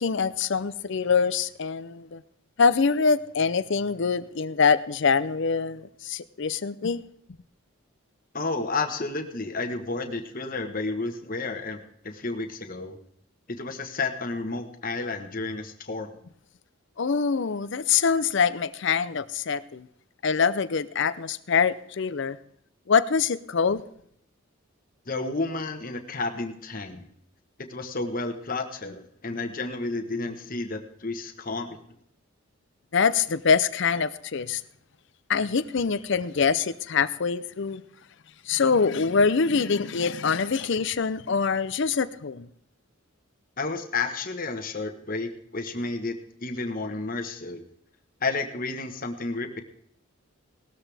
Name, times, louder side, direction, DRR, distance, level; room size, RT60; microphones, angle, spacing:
voice 1, 0.0-2.2 2.6-7.0 17.0-19.9 20.2-22.4 22.9-23.8 32.9-34.6 35.3-37.8 38.5-42.5, left 5 dB, 55° left, 16 dB, 0.5 m, -24 dB
voice 2, 8.3-13.0 13.5-16.1 25.1-27.1 27.7-31.8 43.6-47.6 48.2-49.6, left 3 dB, 40° left, 6 dB, 1.2 m, -31 dB
18.0 x 13.0 x 3.4 m, 0.68 s
head